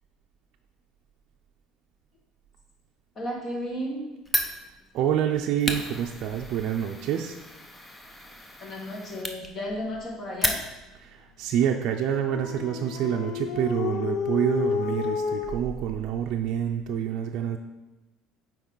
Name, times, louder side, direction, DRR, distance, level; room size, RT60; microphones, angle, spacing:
voice 1, 3.2-4.1 8.6-10.6, equal, 35° left, -1 dB, 1.9 m, -33 dB
Fire, 4.3-11.1, left 1 dB, 10° left, 0.6 m, -34 dB
voice 2, 4.9-7.4 11.0-17.6, right 9 dB, 60° right, 2 dB, 0.5 m, -27 dB
Dog, 12.1-15.6, left 7 dB, 65° left, 0.6 m, -30 dB
8.0 x 4.6 x 4.0 m, 1.0 s
cardioid pair, 130°, 0 cm